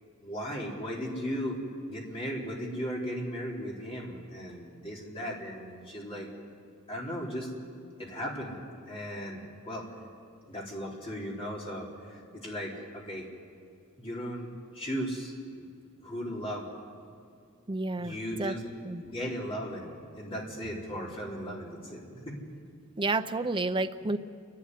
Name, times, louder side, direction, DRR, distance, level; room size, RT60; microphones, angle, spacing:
voice 1, 0.2-1.6 1.9-6.3 6.9-7.5 8.0-8.6 8.9-9.9 10.5-13.3 14.0-15.7 16.0-16.7 18.0-18.6 19.0-22.4 22.8-23.0 24.0-24.1, equal, 25° left, -3 dB, 3.8 m, -37 dB
voice 2, 17.7-18.1 18.4-18.5 18.8-19.0 23.0-24.2, right 2 dB, 25° right, 9 dB, 0.6 m, -30 dB
29.5 x 11.5 x 9.8 m, 2.3 s
head